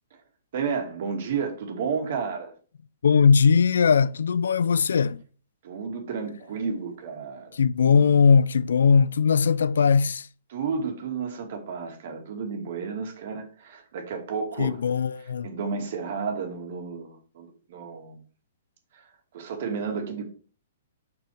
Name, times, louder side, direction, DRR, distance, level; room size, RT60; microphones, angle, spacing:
voice 1, 0.5-2.5 5.6-7.6 7.8-8.1 10.5-14.8 15.4-18.2 18.9-19.0 19.3-20.3, right 5 dB, 60° right, 2.4 m, -32 dB
voice 2, 3.0-5.2 7.5-10.3 14.6-15.5, left 6 dB, 80° left, 0.5 m, -20 dB
6.1 x 6.0 x 4.9 m
hypercardioid pair, 135°, 0 cm